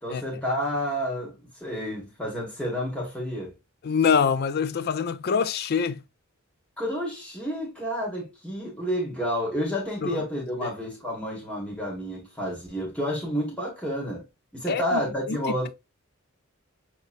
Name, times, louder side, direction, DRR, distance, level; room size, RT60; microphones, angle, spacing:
voice 1, 0.0-3.5 6.8-14.2 14.5-15.7, equal, 5° left, 1.5 m, -30 dB
voice 2, 3.8-6.0 10.0-10.2 10.6-10.7 14.7-15.0 15.3-15.4, left 6 dB, 45° left, 0.3 m, -25 dB
6.4 x 3.0 x 2.4 m
head